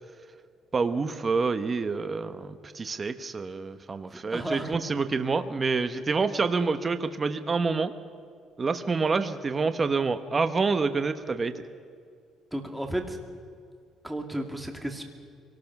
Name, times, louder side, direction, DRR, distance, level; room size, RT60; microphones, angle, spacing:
voice 1, 0.7-7.9 8.6-11.6, right 4 dB, 30° right, 10 dB, 1.0 m, -27 dB
voice 2, 4.0-4.8 12.5-13.2 14.0-15.0, right 1 dB, 5° right, 3 dB, 2.3 m, -33 dB
23.5 x 18.5 x 6.0 m, 2.3 s
cardioid pair, 120°, 0 cm